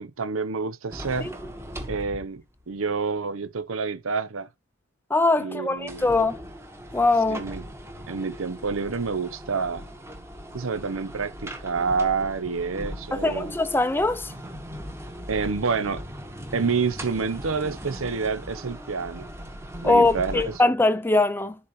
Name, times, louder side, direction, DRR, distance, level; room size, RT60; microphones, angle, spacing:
voice 1, 0.0-1.3 1.9-2.4 2.7-4.5 5.4-6.2 7.3-7.6 8.1-9.8 10.5-13.5 15.3-16.0 16.5-19.3 19.8-20.5, right 5 dB, 80° right, 0.8 m, -28 dB
sound 1, 0.9-2.7 3.1-3.2 5.8-20.6, equal, 15° right, 1.3 m, -39 dB
voice 2, 5.1-6.4 6.9-7.4 13.1-14.3 19.8-21.6, left 2 dB, 10° left, 0.5 m, -22 dB
11.5 x 4.2 x 3.1 m
head